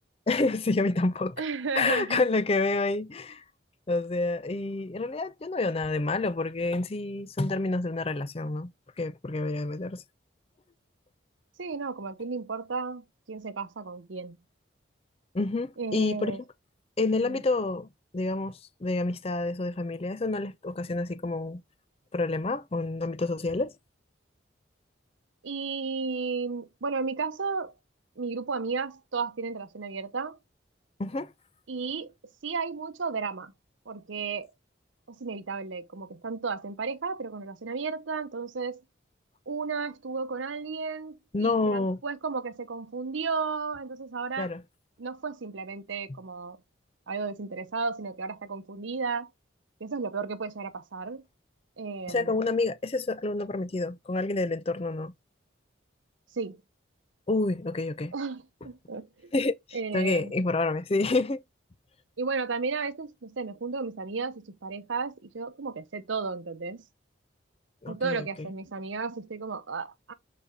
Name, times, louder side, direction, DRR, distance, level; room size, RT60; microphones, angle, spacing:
voice 1, 0.3-1.4 1.7-3.4 3.9-8.7 9.0-10.0 15.3-16.3 17.0-17.9 18.1-21.6 22.1-23.7 31.0-31.3 41.3-42.0 44.4-44.6 46.1-46.2 52.1-55.1 57.3-58.1 59.3-61.4 67.8-68.3, left 3 dB, 30° left, 0.5 m, -28 dB
voice 2, 1.4-2.3 11.6-14.4 15.8-16.4 17.2-17.4 25.4-27.7 28.2-30.4 31.7-32.1 32.4-33.5 33.9-34.5 35.1-38.8 39.5-44.5 45.0-46.6 47.1-49.3 49.8-51.2 51.8-52.4 56.3-56.6 58.1-59.3 59.7-60.3 62.2-66.8 67.9-70.1, right 4 dB, 80° right, 0.8 m, -33 dB
7.1 x 4.2 x 3.6 m
head